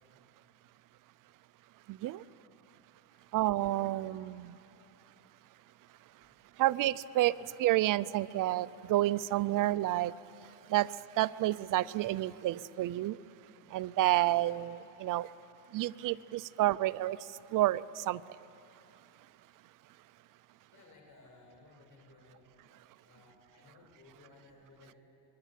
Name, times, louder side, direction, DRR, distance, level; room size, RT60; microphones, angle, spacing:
voice 1, 1.9-2.2 3.3-4.6 6.6-10.1 10.4-13.2 13.7-15.3 15.7-18.2, right 15 dB, 45° right, 17 dB, 0.5 m, -30 dB
voice 2, 20.7-22.4 23.0-25.0, left 3 dB, 35° left, 1 dB, 5.6 m, -59 dB
26.0 x 22.0 x 8.3 m, 2.9 s
supercardioid pair, 115°, 49 cm